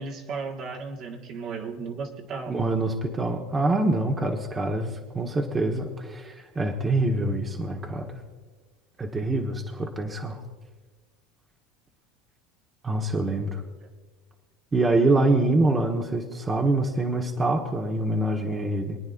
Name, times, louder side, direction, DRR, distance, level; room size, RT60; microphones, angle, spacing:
voice 1, 0.0-2.7, right 4 dB, 50° right, 1 dB, 1.8 m, -35 dB
voice 2, 2.5-8.2 9.0-10.4 12.8-13.6 14.7-19.0, right 2 dB, 20° right, 1 dB, 1.4 m, -25 dB
24.0 x 9.5 x 2.6 m, 1.3 s
hypercardioid pair, 95°, 0 cm